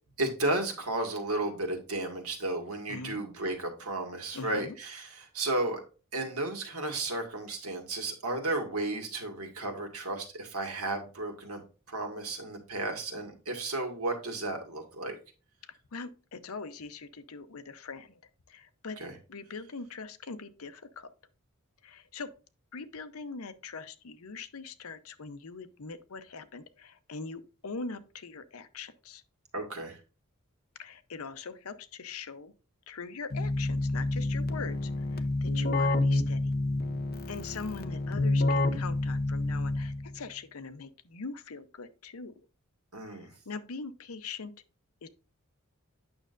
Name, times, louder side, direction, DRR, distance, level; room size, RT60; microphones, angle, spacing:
voice 1, 0.2-5.8 6.1-11.6 11.9-15.2 19.0-19.1 29.5-30.0 42.9-43.3, right 2 dB, 85° right, 1.9 m, -33 dB
voice 2, 2.9-3.2 4.3-4.8 15.7-18.2 18.5-19.0 19.3-21.1 21.8-22.3 22.7-29.2 30.8-32.5 32.9-36.5 37.3-42.5 43.0-44.5 45.0-45.1, left 4 dB, 80° left, 0.7 m, -42 dB
Keyboard (musical), 33.3-40.2, left 2 dB, 45° left, 0.7 m, -29 dB
8.9 x 6.3 x 2.5 m
head